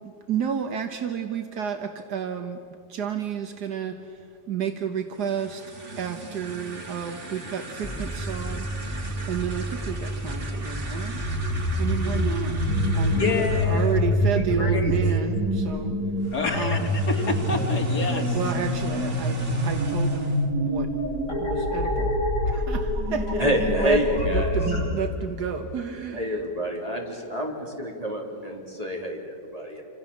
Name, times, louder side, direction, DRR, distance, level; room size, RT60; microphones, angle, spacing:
voice 1, 0.0-2.6 2.9-11.2 11.8-12.6 12.9-15.9 16.5-16.9 18.3-20.9 21.4-22.2 22.4-24.0 24.3-26.4 27.1-27.2, right 7 dB, 80° right, 6 dB, 1.7 m, -31 dB
sound 1, 5.1-14.1 16.2-20.5, right 3 dB, 45° right, 2.6 m, -40 dB
sound 2, 7.8-15.1, equal, 10° left, 0.9 m, -32 dB
sound 3, 11.1-24.8, left 1 dB, 50° left, 8.3 m, -26 dB
voice 2, 13.1-13.9 14.5-14.9 16.3-16.8 17.1-18.4, left 2 dB, 75° left, 2 dB, 3.2 m, -27 dB
voice 3, 23.4-24.6 26.1-29.8, left 1 dB, 20° right, 0 dB, 3.9 m, -28 dB
28.0 x 27.0 x 7.3 m, 2.6 s
omnidirectional pair, 1.8 m